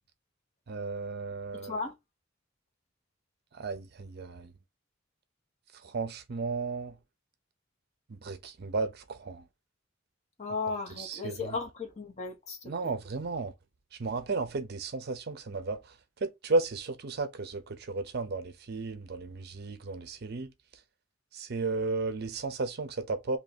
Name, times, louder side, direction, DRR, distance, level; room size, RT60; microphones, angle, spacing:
voice 1, 0.7-1.8 3.5-4.5 5.8-6.9 8.1-9.4 11.0-11.6 12.6-13.5 14.0-15.8 16.2-20.5 21.3-23.4, right 3 dB, 50° right, 0.5 m, -34 dB
voice 2, 1.5-1.9 10.4-12.6 12.8-12.9, left 4 dB, 35° left, 0.9 m, -35 dB
2.7 x 2.6 x 4.1 m
head